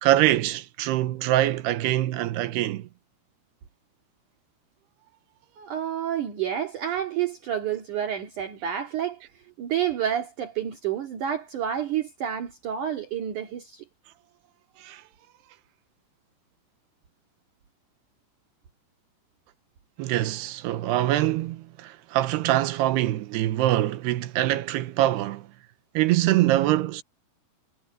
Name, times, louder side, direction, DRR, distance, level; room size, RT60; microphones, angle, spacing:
voice 1, 0.0-2.9 14.8-15.0 20.0-25.5 25.9-27.0, right 14 dB, 85° right, 3.0 m, -24 dB
voice 2, 5.6-13.8, right 9 dB, 55° right, 3.3 m, -29 dB
omnidirectional pair, 4.8 m